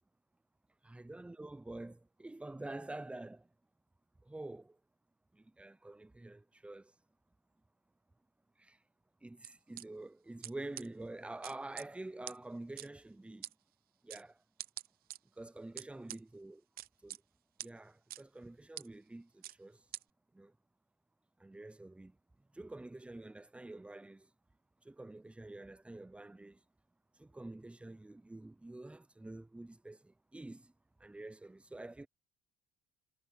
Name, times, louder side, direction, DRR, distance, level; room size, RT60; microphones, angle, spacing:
voice 1, 0.8-3.5 4.2-4.8 5.3-6.9 8.6-8.8 9.2-13.5 14.0-14.4 15.4-16.6 17.0-17.2 17.6-19.8 20.3-20.6 21.4-22.2 22.5-24.3 24.8-26.6 27.1-30.7 31.0-32.1, right 2 dB, 5° right, 0.5 m, -47 dB
sound 1, 9.4-9.8 10.4-10.5 10.8-10.9 11.4-11.9 12.3-12.4 12.8-12.9 13.4-13.5 14.1-14.2 14.6-15.2 15.8-16.2 16.8-17.2 17.6-17.7 18.1-18.2 18.8-18.9 19.4-19.5 19.9-20.0, right 14 dB, 65° right, 0.7 m, -44 dB
cardioid pair, 110°, 17 cm